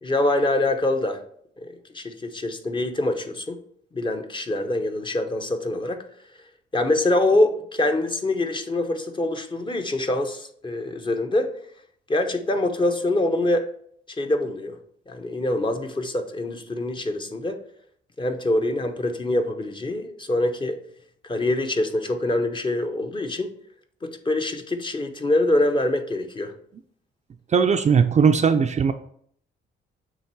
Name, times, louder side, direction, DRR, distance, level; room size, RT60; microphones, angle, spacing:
voice 1, 0.0-1.2 1.6-3.6 3.9-6.0 6.7-11.5 12.1-13.7 14.2-14.8 15.1-17.6 18.2-20.8 21.2-23.5 24.0-26.5, left 1 dB, 25° left, 6 dB, 0.8 m, -24 dB
voice 2, 27.5-28.9, right 6 dB, 35° right, 7 dB, 0.4 m, -18 dB
7.1 x 3.0 x 4.6 m, 0.64 s
cardioid pair, 90°, 20 cm